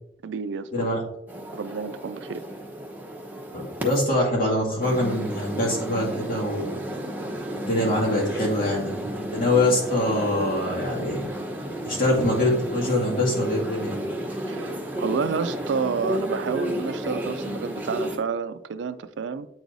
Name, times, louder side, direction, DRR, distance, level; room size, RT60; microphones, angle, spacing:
voice 1, 0.2-0.9 1.5-2.4 14.5-19.5, right 5 dB, 75° right, 0.4 m, -30 dB
sound 1, 1.3-4.0 4.8-18.2, equal, 10° right, 1.0 m, -32 dB
voice 2, 3.5-6.7 7.5-11.2 11.8-14.0, left 1 dB, 55° left, 2.2 m, -24 dB
8.8 x 4.7 x 2.6 m
head